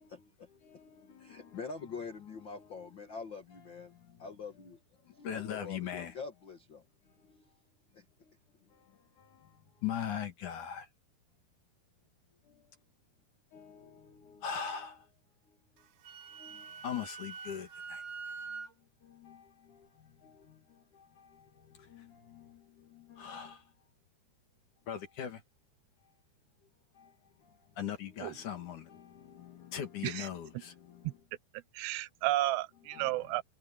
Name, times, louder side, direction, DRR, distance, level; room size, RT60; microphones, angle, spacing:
voice 1, 0.6-1.6 2.6-2.7 3.8-4.2 5.0-6.1 7.2-7.4 8.2-8.3 8.7-8.9 9.2-10.9 12.5-12.6 13.5-15.1 16.3-18.0 18.5-18.6 19.0-23.6 24.9-25.4 27.0-27.1 27.4-31.1 32.9-33.3, left 8 dB, 55° left, 3.2 m, -42 dB
voice 2, 1.2-3.9 4.2-4.8 5.3-6.8 7.9-8.0, left 5 dB, 70° left, 1.1 m, -44 dB
Wind instrument woodwind instrument, 15.8-18.7, right 5 dB, 60° right, 2.4 m, -45 dB
voice 3, 31.7-33.4, right 17 dB, 85° right, 2.8 m, -32 dB
omnidirectional pair, 4.8 m